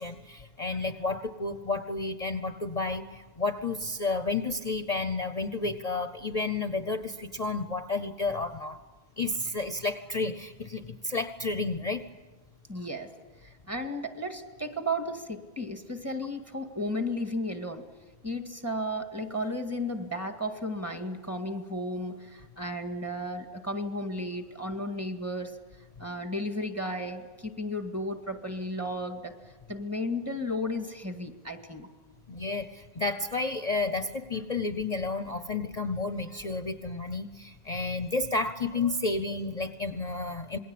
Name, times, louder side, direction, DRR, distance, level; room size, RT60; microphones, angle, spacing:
voice 1, 0.0-8.8 9.2-12.0 32.3-40.6, left 3 dB, 40° left, 9 dB, 1.0 m, -31 dB
voice 2, 12.7-13.1 13.4-17.9 18.2-25.5 26.0-29.3 29.7-31.9, left 1 dB, 15° right, 6 dB, 2.0 m, -34 dB
27.0 x 21.0 x 8.6 m, 1.2 s
omnidirectional pair, 1.1 m